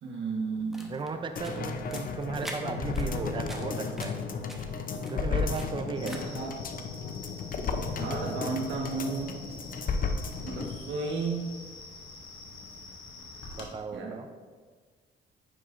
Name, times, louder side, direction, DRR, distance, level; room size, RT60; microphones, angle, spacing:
voice 1, 0.0-0.9 1.6-1.7 6.0-6.5 7.9-9.3 10.4-11.5 13.9-14.2, right 4 dB, 70° right, 0 dB, 1.3 m, -33 dB
sound 1, 0.5-6.5, equal, ahead, 1.0 m, -47 dB
voice 2, 0.9-4.2 5.1-6.2 13.6-14.3, right 4 dB, 25° right, 7 dB, 0.5 m, -35 dB
sound 2, 1.4-10.8 11.1-11.2, left 4 dB, 45° left, 0.6 m, -34 dB
sound 3, 5.9-13.6, left 3 dB, 90° left, 1.1 m, -46 dB
9.6 x 4.8 x 2.5 m, 1.5 s
cardioid pair, 90°, 20 cm